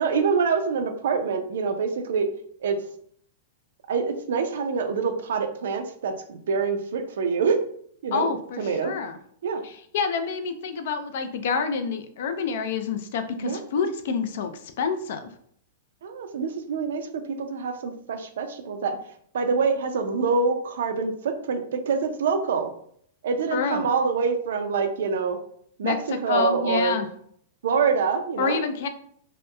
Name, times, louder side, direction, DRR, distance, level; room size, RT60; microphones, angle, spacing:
voice 1, 0.0-2.3 2.6-2.8 3.9-7.6 8.0-8.3 8.6-8.9 9.4-9.6 13.4-13.9 16.0-19.0 19.3-22.7 23.2-25.4 25.8-26.0 26.2-27.0 27.6-28.6, right 5 dB, 75° right, 7 dB, 0.4 m, -25 dB
voice 2, 8.1-9.2 9.6-15.3 23.5-23.9 25.8-26.0 26.3-27.1 28.4-28.9, left 5 dB, 65° left, 9 dB, 0.3 m, -27 dB
2.8 x 2.0 x 2.3 m, 0.64 s
hypercardioid pair, 145°, 0 cm